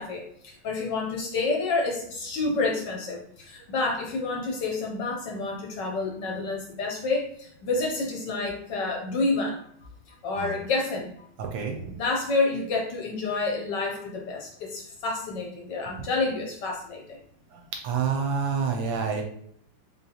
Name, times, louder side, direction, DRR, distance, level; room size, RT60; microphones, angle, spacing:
voice 1, 0.0-9.6 10.2-11.3 11.9-17.2, left 3 dB, 65° left, -1 dB, 1.2 m, -29 dB
voice 2, 11.4-11.8 17.5-19.2, right 6 dB, 75° right, 3 dB, 1.2 m, -28 dB
3.9 x 3.6 x 2.8 m, 0.68 s
omnidirectional pair, 2.4 m